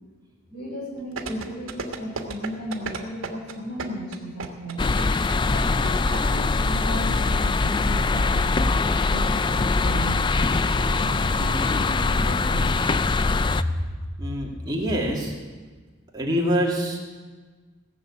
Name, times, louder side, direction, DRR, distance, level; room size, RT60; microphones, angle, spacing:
voice 1, 0.5-4.8 5.6-10.2 10.7-12.7, equal, 55° left, -4 dB, 4.5 m, -35 dB
sound 1, 1.2-6.2 6.5-6.6, right 4 dB, 85° right, 1.4 m, -33 dB
sound 2, 4.8-13.6, left 3 dB, 25° left, 0.3 m, -22 dB
voice 2, 14.2-15.3 16.1-17.0, equal, 20° right, -2 dB, 2.4 m, -25 dB
17.0 x 7.0 x 8.5 m, 1.4 s
head